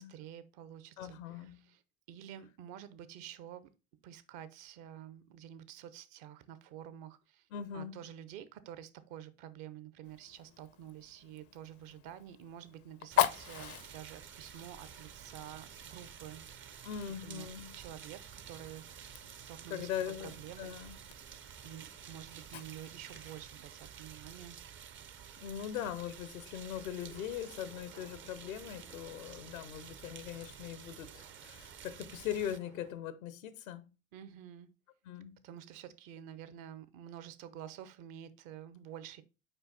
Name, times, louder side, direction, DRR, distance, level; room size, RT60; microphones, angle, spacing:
voice 1, 0.0-1.8 2.1-3.7 4.0-7.5 7.7-16.9 17.2-17.5 17.7-19.9 20.2-20.8 21.6-24.6 34.1-34.7 35.4-39.2, right 10 dB, 55° right, 0.9 m, -49 dB
voice 2, 1.0-1.7 7.5-8.0 16.8-17.8 19.7-21.0 25.4-33.9 35.0-35.4, left 9 dB, 75° left, 0.8 m, -41 dB
Fire, 10.0-23.3, left 13 dB, 35° left, 0.5 m, -41 dB
sound 1, 13.1-32.6, right 8 dB, 30° right, 0.6 m, -51 dB
sound 2, 26.7-33.0, right 4 dB, 80° right, 2.0 m, -60 dB
5.6 x 4.6 x 4.0 m
hypercardioid pair, 75°, 41 cm